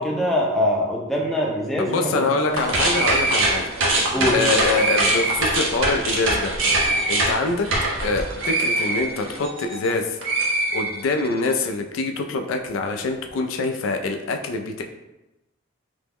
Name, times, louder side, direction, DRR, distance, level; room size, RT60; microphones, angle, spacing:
voice 1, 0.0-2.6 4.1-4.4, left 1 dB, ahead, -3 dB, 0.4 m, -23 dB
voice 2, 1.8-3.6 4.3-6.5 7.1-7.7 8.0-10.2 10.7-14.8, left 3 dB, 90° left, 5 dB, 0.3 m, -24 dB
sound 1, 2.5-9.9 10.2-11.4, right 2 dB, 90° right, 0.7 m, -22 dB
3.3 x 2.0 x 3.4 m, 0.99 s
head